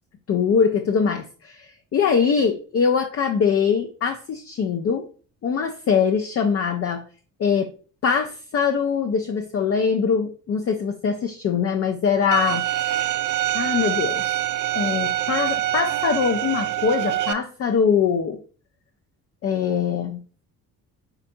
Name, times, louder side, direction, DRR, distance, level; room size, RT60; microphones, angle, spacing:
voice 1, 0.3-5.1 5.4-7.0 7.4-7.7 8.0-12.6 13.5-14.4 14.7-18.4 19.4-20.2, left 6 dB, 35° left, 5 dB, 0.5 m, -22 dB
Bowed string instrument, 12.3-17.3, right 14 dB, 45° right, 0.4 m, -25 dB
4.2 x 3.9 x 2.6 m, 0.40 s
hypercardioid pair, 50°, 45 cm